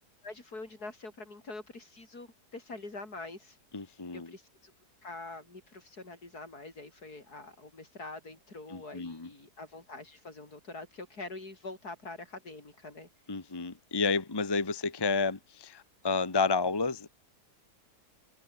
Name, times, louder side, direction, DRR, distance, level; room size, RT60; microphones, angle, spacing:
voice 1, 0.2-3.6 4.1-4.7 5.0-13.1, left 2 dB, 70° left, 5.6 m, -45 dB
voice 2, 3.7-4.3 8.7-9.3 13.3-17.1, left 4 dB, 15° left, 1.1 m, -31 dB
omnidirectional pair, 1.7 m